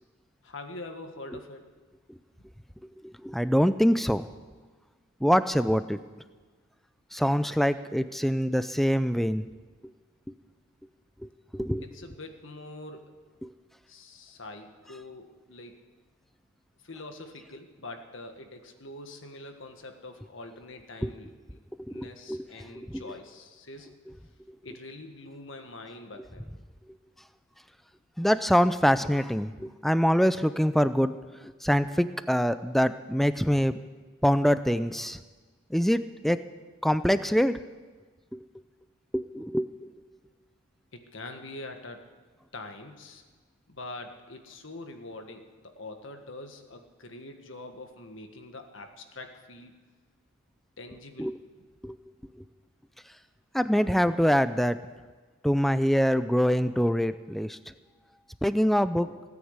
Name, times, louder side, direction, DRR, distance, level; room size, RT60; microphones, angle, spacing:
voice 1, 0.4-1.7 11.8-13.1 13.9-15.7 16.8-21.6 21.9-23.9 24.6-26.5 40.9-42.0 42.5-43.2 43.7-49.7 50.8-51.3, left 2 dB, 65° left, 5 dB, 1.6 m, -44 dB
voice 2, 3.0-4.3 5.2-6.0 7.1-9.4 11.2-11.8 13.4-13.5 21.0-21.1 21.9-22.4 22.9-23.1 28.2-31.1 31.6-33.8 34.2-35.2 35.7-36.4 36.8-37.5 38.3-38.4 39.1-39.9 51.2-51.4 51.8-52.0 53.5-54.8 55.4-57.6 58.4-59.1, equal, ahead, 13 dB, 0.4 m, -24 dB
17.5 x 9.5 x 8.2 m, 1.4 s
head